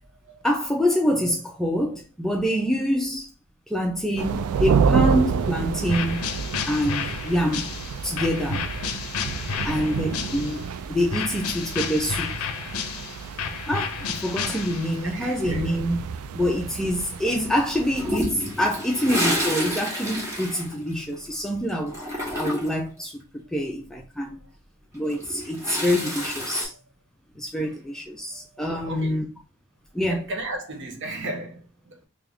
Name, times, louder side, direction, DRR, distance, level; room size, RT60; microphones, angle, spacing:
voice 1, 0.4-3.3 3.7-6.4 6.7-7.7 8.0-8.7 9.6-10.6 10.9-12.5 13.7-16.0 16.3-22.0 22.3-23.2 23.5-24.4 24.9-26.7 27.4-29.2 29.9-30.2, equal, ahead, 0.4 m, -26 dB
sound 1, 4.2-18.1, right 6 dB, 80° right, 0.3 m, -29 dB
sound 2, 5.9-10.7 11.1-15.1, left 6 dB, 75° left, 0.5 m, -31 dB
voice 2, 9.4-9.7 10.5-10.8 12.6-13.0 15.0-15.7 26.7-26.8 28.5-29.2 30.1-32.1, right 2 dB, 55° right, 0.8 m, -36 dB
Toilet flush, 18.0-21.4 21.7-22.9 24.9-26.7, equal, 15° right, 1.0 m, -29 dB
3.4 x 2.4 x 3.5 m
head